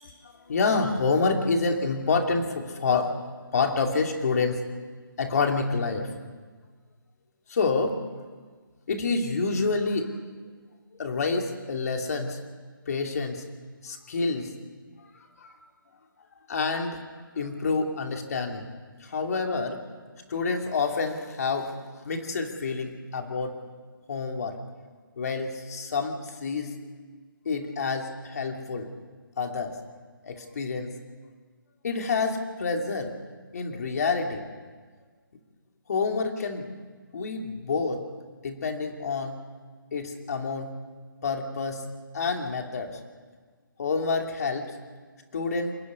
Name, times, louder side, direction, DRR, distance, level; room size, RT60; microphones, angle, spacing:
voice 1, 0.0-3.1 3.5-4.6 5.2-6.1 7.5-8.0 8.9-10.2 11.0-12.4 12.9-13.4 13.8-14.5 15.0-15.5 16.5-17.0 17.4-18.6 19.0-19.8 20.3-23.6 24.1-24.6 25.2-26.7 27.4-28.9 29.4-29.8 30.2-30.9 31.8-33.1 33.5-34.5 35.9-36.7 37.1-38.0 38.4-39.4 39.9-40.7 41.2-41.8 42.1-43.0 43.8-44.8 45.3-45.8, left 4 dB, 45° left, 3 dB, 2.7 m, -28 dB
28.0 x 9.7 x 9.6 m, 1.5 s
hypercardioid pair, 165°, 12 cm